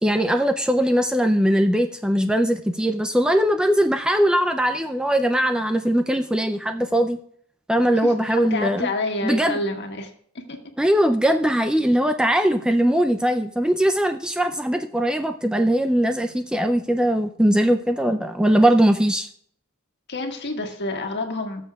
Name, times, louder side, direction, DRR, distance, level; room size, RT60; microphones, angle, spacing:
voice 1, 0.0-7.2 7.7-8.9 9.2-9.6 10.8-19.3, equal, 5° right, 7 dB, 0.3 m, -20 dB
voice 2, 8.0-10.1 10.5-10.6 20.1-21.6, left 2 dB, 50° left, 3 dB, 1.6 m, -28 dB
18.0 x 7.3 x 2.3 m, 0.63 s
head